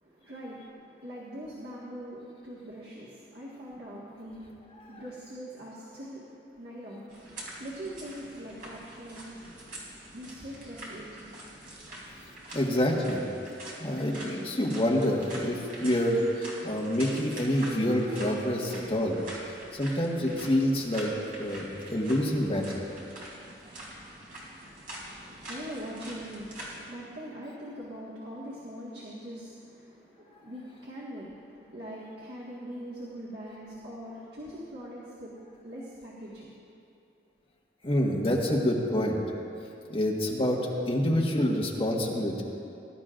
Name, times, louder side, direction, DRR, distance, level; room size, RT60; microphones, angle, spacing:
voice 1, 0.0-9.7 10.1-11.3 24.7-36.6, equal, 70° right, -7 dB, 1.8 m, -42 dB
sound 1, 7.1-26.8, right 1 dB, 50° right, 3.3 m, -44 dB
voice 2, 12.5-13.2 13.8-19.2 19.7-21.1 21.4-22.8 37.8-39.2 39.9-40.6 40.9-42.4, equal, 30° left, -2 dB, 1.5 m, -27 dB
21.0 x 12.0 x 2.6 m, 2.6 s
head